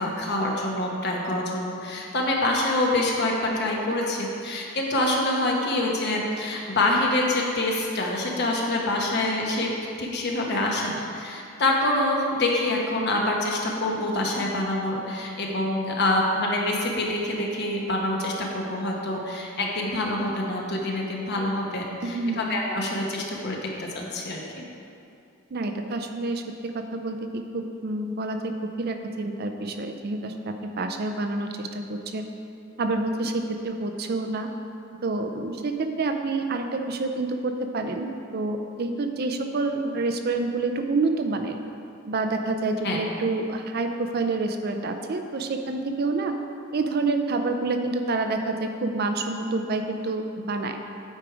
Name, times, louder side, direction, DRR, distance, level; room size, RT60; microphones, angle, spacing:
voice 1, 0.0-9.7 10.0-24.6 42.8-43.0, left 1 dB, 55° left, -1 dB, 1.1 m, -26 dB
voice 2, 22.0-22.5 25.5-28.5 28.8-32.2 32.8-34.5 35.0-41.6 42.1-46.3 46.7-50.8, right 3 dB, 50° right, 6 dB, 0.5 m, -28 dB
8.5 x 4.7 x 4.9 m, 2.6 s
head